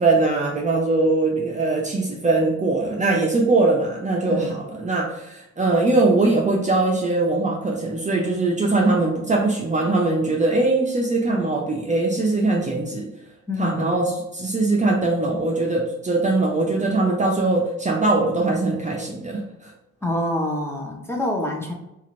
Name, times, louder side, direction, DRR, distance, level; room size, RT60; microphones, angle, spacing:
voice 1, 0.0-13.1 13.6-19.7, right 2 dB, 25° right, -1 dB, 0.6 m, -21 dB
voice 2, 13.5-13.9 20.0-21.7, left 1 dB, 10° left, 0 dB, 0.8 m, -26 dB
3.8 x 2.5 x 3.1 m, 0.87 s
cardioid pair, 90°, 30 cm